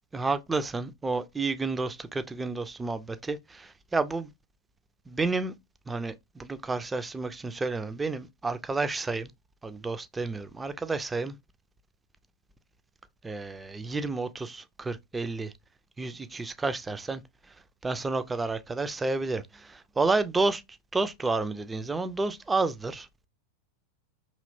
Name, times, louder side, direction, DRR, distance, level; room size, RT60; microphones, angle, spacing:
voice 1, 0.1-4.3 5.1-5.5 5.9-9.3 9.6-11.4 13.2-15.5 16.0-17.2 17.8-20.6 20.9-23.1, right 3 dB, 10° right, 0.3 m, -30 dB
2.9 x 2.8 x 2.6 m
figure-of-eight pair, 90°, 0 cm